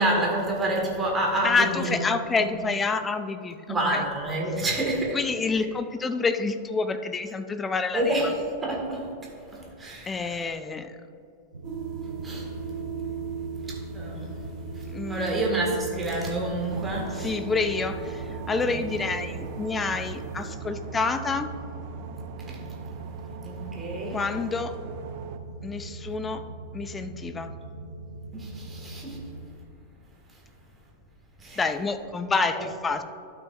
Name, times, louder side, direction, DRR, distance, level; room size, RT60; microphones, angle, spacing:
voice 1, 0.0-2.6 3.7-5.2 7.9-9.1 9.5-10.4 12.2-12.5 13.9-14.2 15.1-17.4 18.7-18.8 22.5-22.6 23.4-24.3 28.3-29.2 31.4-31.6 32.5-32.6, right 1 dB, 15° right, -2 dB, 1.9 m, -28 dB
voice 2, 1.4-4.0 5.1-8.0 10.1-10.9 14.9-15.3 17.2-21.5 24.1-24.7 25.6-26.4 26.7-27.5 31.6-33.0, left 4 dB, 15° left, 9 dB, 0.5 m, -28 dB
sound 1, 11.5-29.5, right 2 dB, 75° right, 0.7 m, -40 dB
sound 2, 11.6-20.5, right 8 dB, 30° right, 1.0 m, -39 dB
sound 3, 16.7-25.4, right 8 dB, 45° right, 0.5 m, -42 dB
12.0 x 6.0 x 2.6 m, 2.6 s
figure-of-eight pair, 90°, 0 cm